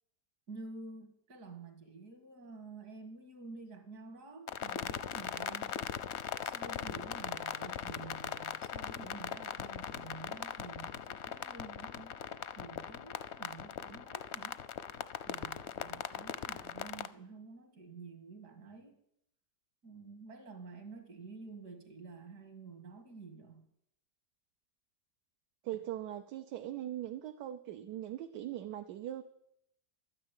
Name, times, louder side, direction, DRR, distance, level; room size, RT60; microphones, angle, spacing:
voice 1, 0.5-5.9 6.4-14.6 15.3-19.0 19.8-23.7, right 4 dB, 65° right, 7 dB, 2.6 m, -50 dB
sound 1, 4.5-17.1, left 9 dB, 60° left, 0.7 m, -40 dB
voice 2, 25.6-29.2, right 12 dB, 85° right, 8 dB, 1.3 m, -40 dB
12.5 x 9.9 x 9.1 m, 0.78 s
omnidirectional pair, 1.8 m